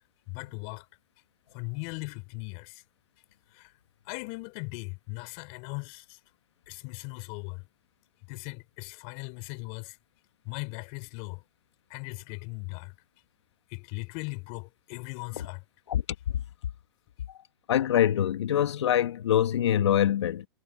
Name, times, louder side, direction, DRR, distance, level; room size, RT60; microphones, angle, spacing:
voice 1, 0.3-0.9 1.5-2.8 3.5-3.7 4.1-6.2 6.7-7.6 8.3-10.0 10.5-11.4 11.9-12.9 13.7-15.6, left 32 dB, 45° left, 5.2 m, -38 dB
voice 2, 17.7-20.5, left 10 dB, 75° left, 1.9 m, -24 dB
hypercardioid pair, 120°, 15 cm